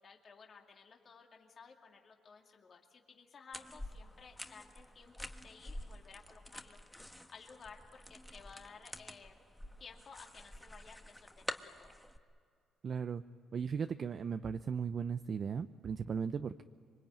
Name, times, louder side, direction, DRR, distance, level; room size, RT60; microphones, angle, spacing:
voice 1, 0.0-9.4 9.8-12.0, left 5 dB, 45° left, 2 dB, 2.4 m, -56 dB
sound 1, 3.5-12.2, left 1 dB, 5° left, 1.3 m, -48 dB
voice 2, 12.8-13.2 13.5-16.6, right 6 dB, 50° right, 9 dB, 0.7 m, -37 dB
26.0 x 23.0 x 9.0 m, 2.3 s
cardioid pair, 90°, 0 cm